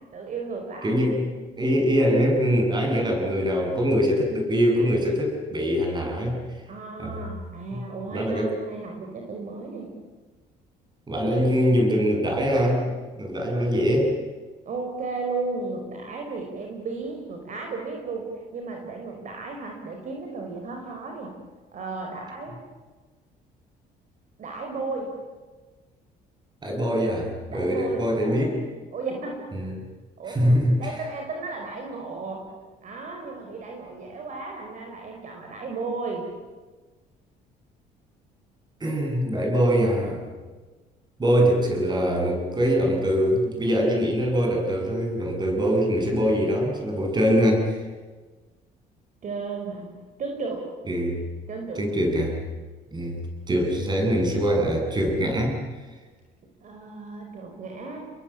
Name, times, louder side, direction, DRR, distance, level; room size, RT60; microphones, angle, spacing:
voice 1, 0.1-1.0 6.7-9.9 14.6-21.3 21.7-22.6 24.4-25.1 27.5-28.5 28.9-29.4 30.2-32.4 32.8-36.2 49.2-49.9 50.2-50.7 51.5-51.8 56.6-58.1, right 3 dB, 50° right, 2 dB, 5.0 m, -34 dB
voice 2, 0.8-1.3 1.6-6.4 7.0-7.2 7.7-7.8 8.1-8.5 11.1-14.1 26.6-28.5 29.5-29.8 30.3-30.8 38.8-40.3 41.2-47.8 50.9-51.2 51.7-52.4 52.9-53.2 53.5-55.6, equal, 25° right, 2 dB, 7.7 m, -23 dB
29.5 x 22.0 x 8.7 m, 1.3 s
cardioid pair, 110°, 17 cm